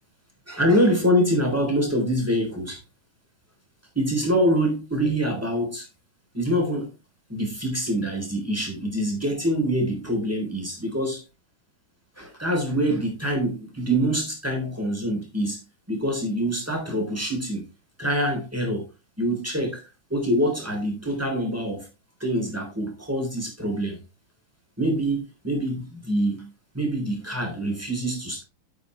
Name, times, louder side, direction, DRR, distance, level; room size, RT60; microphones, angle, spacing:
voice 1, 0.5-2.8 4.0-5.9 6.3-6.9 7.3-11.2 12.2-15.6 15.9-17.7 18.0-18.9 19.2-19.8 20.1-21.9 22.2-24.0 24.8-26.5 26.7-28.4, equal, 5° right, 3.6 m, -25 dB
9.6 x 8.2 x 3.3 m
omnidirectional pair, 2.2 m